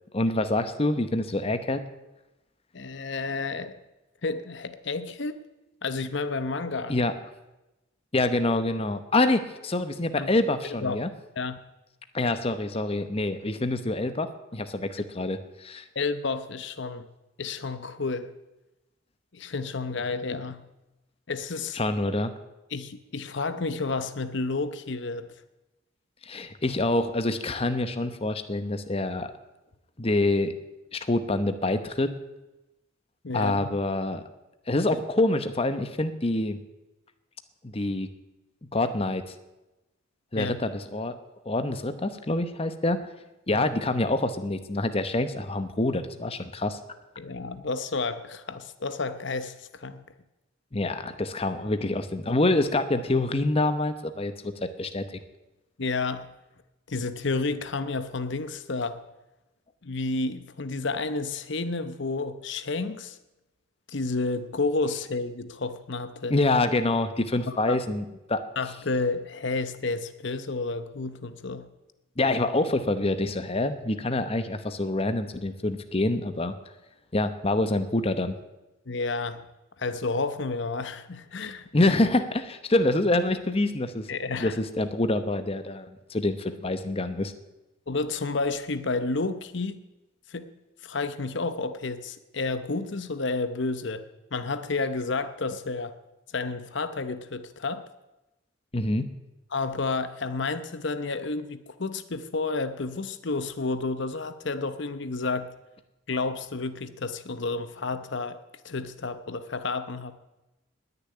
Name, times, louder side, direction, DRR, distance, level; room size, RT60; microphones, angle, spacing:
voice 1, 0.1-1.8 6.9-7.1 8.1-11.1 12.1-15.8 21.7-22.3 26.2-29.3 30.0-30.5 30.9-32.1 33.3-34.2 34.7-36.6 37.6-38.1 38.7-39.3 40.3-41.2 41.4-43.0 43.5-46.8 50.7-55.2 66.3-68.4 72.2-76.5 77.1-78.4 81.7-84.1 84.4-87.3 98.7-99.1, left 2 dB, 30° left, 10 dB, 0.9 m, -26 dB
voice 2, 2.7-3.8 4.2-5.4 5.8-7.0 10.2-10.3 10.8-11.0 11.4-11.6 15.9-17.1 17.4-18.3 19.3-20.6 21.3-21.8 22.7-25.3 33.2-33.7 40.3-40.5 43.5-43.7 47.2-50.0 55.8-56.3 56.9-59.0 59.8-63.2 63.9-66.4 67.5-67.8 68.6-71.7 78.9-79.4 79.8-81.9 84.1-84.5 87.9-89.8 90.3-90.5 90.8-94.0 94.3-96.0 96.3-97.8 99.5-105.5 106.1-108.4 108.6-110.2, left 3 dB, 60° left, 12 dB, 0.8 m, -31 dB
19.5 x 7.0 x 9.7 m, 1.0 s
head